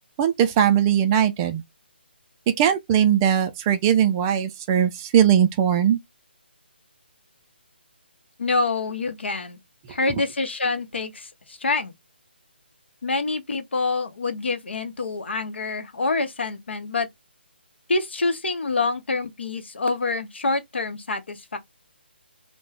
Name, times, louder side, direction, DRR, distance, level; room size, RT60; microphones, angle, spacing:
voice 1, 0.2-1.6 2.6-6.0, right 9 dB, 20° right, 0.3 m, -20 dB
voice 2, 8.4-9.6 9.9-11.9 13.0-17.1 17.9-21.6, left 3 dB, 75° left, 0.7 m, -26 dB
2.3 x 2.1 x 3.3 m
figure-of-eight pair, 155°, 6 cm